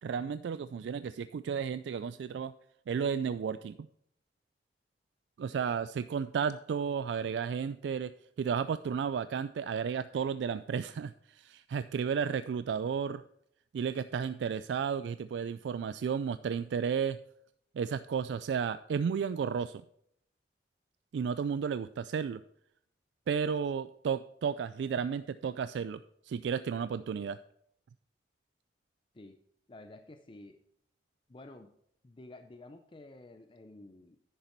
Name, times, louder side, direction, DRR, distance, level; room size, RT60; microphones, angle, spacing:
voice 1, 0.0-2.5 2.9-3.8 5.4-8.1 8.4-13.2 13.7-17.2 17.8-19.8 21.1-22.4 23.3-26.0 26.3-27.4, right 6 dB, 85° right, 13 dB, 0.3 m, -33 dB
voice 2, 29.7-30.6 31.3-31.7 32.0-34.2, left 2 dB, 30° left, 7 dB, 0.5 m, -51 dB
10.0 x 6.7 x 4.5 m, 0.70 s
head